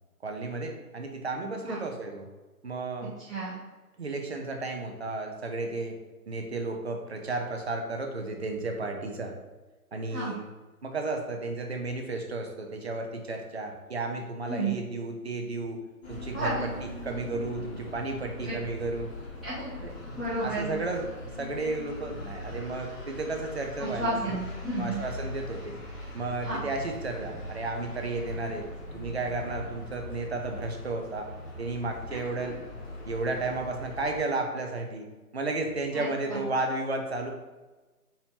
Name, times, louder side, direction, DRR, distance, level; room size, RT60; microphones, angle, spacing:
voice 1, 0.2-2.3 2.6-3.1 4.0-6.0 6.3-9.3 9.9-10.5 10.8-15.8 16.1-16.5 17.0-19.1 19.8-24.4 24.8-25.7 26.1-28.7 28.9-31.3 31.6-32.7 33.1-35.1 35.3-37.3, right 3 dB, 45° right, 3 dB, 0.7 m, -33 dB
sound 1, 16.0-34.2, left 1 dB, 40° left, 1.4 m, -41 dB
voice 2, 16.3-16.7 18.4-18.6 19.4-19.8 20.1-20.7 23.8-25.0 26.4-26.6 32.1-32.2 35.9-36.4, right 2 dB, ahead, -22 dB, 0.6 m, -32 dB
4.3 x 4.1 x 2.9 m, 1.2 s
figure-of-eight pair, 155°, 46 cm